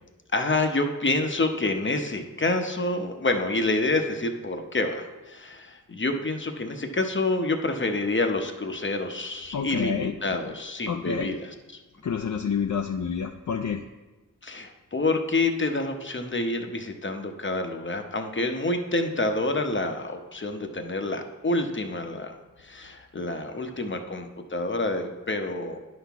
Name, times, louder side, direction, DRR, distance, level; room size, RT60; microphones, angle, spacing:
voice 1, 0.3-11.5 14.4-22.3 22.6-25.8, left 2 dB, 35° left, 5 dB, 0.8 m, -28 dB
voice 2, 9.5-10.1 10.9-11.3 12.0-13.8, left 6 dB, 60° left, 3 dB, 0.5 m, -28 dB
10.5 x 5.9 x 3.5 m, 1.1 s
wide cardioid pair, 60°, 34 cm